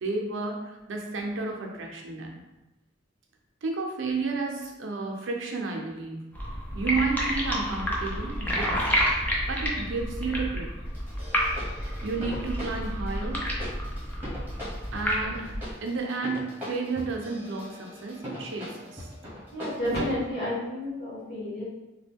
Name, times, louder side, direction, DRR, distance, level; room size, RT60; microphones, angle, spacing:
voice 1, 0.0-2.4 3.6-6.2 6.7-8.8 9.5-10.7 12.0-13.4 14.9-19.1, right 3 dB, 80° right, 1 dB, 0.5 m, -32 dB
sound 1, 6.3-15.7, equal, 10° left, 0.5 m, -30 dB
sound 2, 10.9-20.1, equal, 10° right, 1.0 m, -41 dB
voice 2, 19.5-21.6, left 1 dB, 60° left, -9 dB, 1.3 m, -30 dB
2.9 x 2.2 x 3.4 m, 0.99 s
head